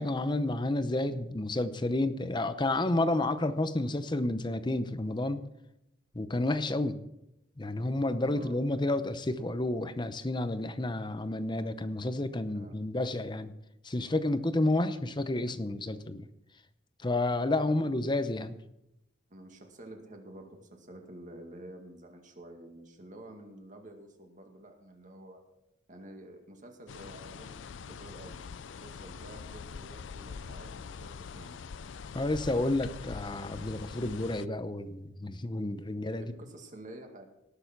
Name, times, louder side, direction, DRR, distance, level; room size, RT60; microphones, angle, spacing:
voice 1, 0.0-5.4 6.1-7.0 7.6-13.5 13.8-16.2 17.0-18.6 32.1-36.2, left 2 dB, 25° left, 12 dB, 0.7 m, -30 dB
voice 2, 8.3-8.7 12.5-12.9 19.3-25.4 25.9-28.4 28.8-31.6 35.9-37.3, right 1 dB, 40° right, 3 dB, 2.2 m, -49 dB
sound 1, 26.9-34.5, left 6 dB, 70° left, 0.4 m, -44 dB
18.5 x 6.8 x 6.0 m, 0.87 s
head